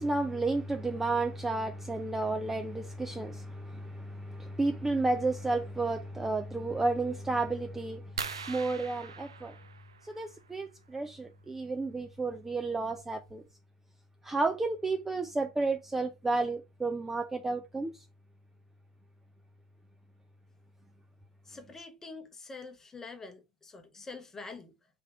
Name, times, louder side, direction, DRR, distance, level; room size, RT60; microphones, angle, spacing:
voice 1, 0.0-8.0 8.5-9.5 10.0-13.4 14.2-17.9, right 3 dB, 10° right, 0.5 m, -32 dB
sound 1, 8.2-10.5 12.2-12.3 12.9-13.0 13.3-13.5, right 6 dB, 75° right, 0.5 m, -42 dB
voice 2, 21.4-24.7, left 3 dB, 15° left, 1.0 m, -46 dB
3.5 x 3.3 x 4.6 m
figure-of-eight pair, 80°, 3 cm